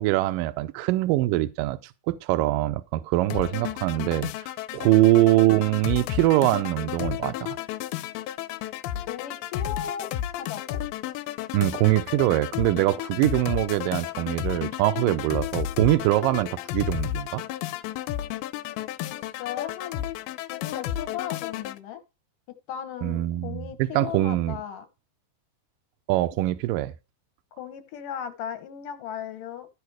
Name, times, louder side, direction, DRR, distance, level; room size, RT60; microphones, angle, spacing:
voice 1, 0.0-1.8 2.1-7.6 11.5-17.4 23.0-24.6 26.1-26.9, right 17 dB, 80° right, 2.1 m, -23 dB
sound 1, 3.3-21.8, left 12 dB, 90° left, 2.6 m, -32 dB
voice 2, 9.1-10.1 10.4-10.8 19.0-20.1 20.5-22.0 22.7-24.9 27.5-29.7, left 9 dB, 70° left, 2.5 m, -36 dB
13.5 x 4.9 x 4.7 m
omnidirectional pair, 4.3 m